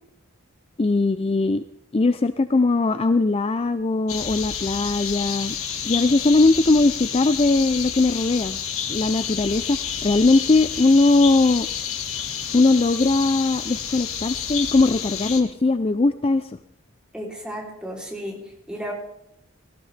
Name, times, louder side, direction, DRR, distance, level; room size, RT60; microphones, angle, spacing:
voice 1, 0.8-1.6 1.9-5.6 5.8-8.6 8.9-11.7 12.5-16.6, left 3 dB, 30° left, 11 dB, 0.4 m, -20 dB
sound 1, 4.1-15.4, left 8 dB, 85° left, 1.8 m, -30 dB
voice 2, 17.1-18.9, equal, 5° right, -2 dB, 3.4 m, -34 dB
18.0 x 15.5 x 3.4 m, 0.75 s
head